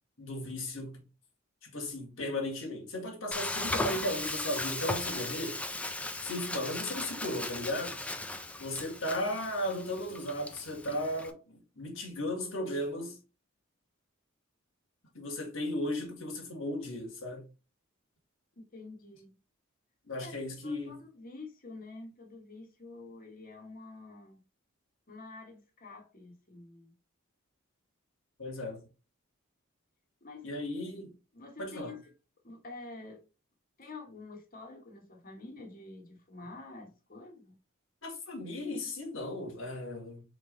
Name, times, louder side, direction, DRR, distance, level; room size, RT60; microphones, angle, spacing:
voice 1, 0.2-1.0 1.6-5.6 6.2-8.0 8.6-13.2 15.1-17.5 20.1-21.0 28.4-28.9 30.4-31.1 31.6-31.9 38.0-40.2, left 1 dB, 65° left, 1.8 m, -36 dB
Frying (food), 3.3-11.3, left 2 dB, 5° left, 0.4 m, -37 dB
voice 2, 18.6-19.4 20.2-20.3 20.6-24.4 25.1-27.0 30.2-30.5 31.3-32.1 32.4-33.2 33.8-37.6, left 3 dB, 40° left, 1.4 m, -48 dB
4.2 x 3.3 x 3.8 m
head